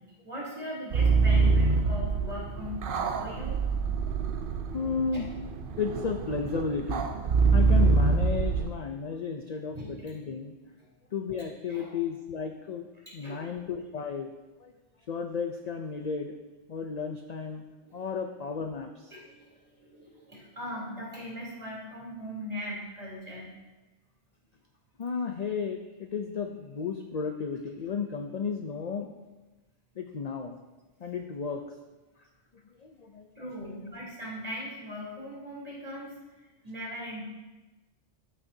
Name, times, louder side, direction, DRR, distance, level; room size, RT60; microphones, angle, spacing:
voice 1, 0.2-3.6 5.1-5.2 9.7-10.0 10.8-10.9 11.7-11.9 13.2-13.5 17.8-18.0 19.1-23.5 33.3-36.1 36.6-37.2, equal, 35° right, -6 dB, 3.3 m, -39 dB
sound 1, 0.9-8.7, right 4 dB, 55° right, 0.7 m, -25 dB
voice 2, 4.7-5.3 5.8-7.1 7.5-10.5 11.1-12.9 13.1-14.3 14.6-14.7 15.1-16.3 16.7-17.6 17.9-19.1 25.0-29.1 30.0-30.6 31.0-31.6 32.8-33.3 33.7-33.8, left 5 dB, 50° left, 4 dB, 0.5 m, -33 dB
14.5 x 6.6 x 2.7 m, 1.1 s
omnidirectional pair, 1.2 m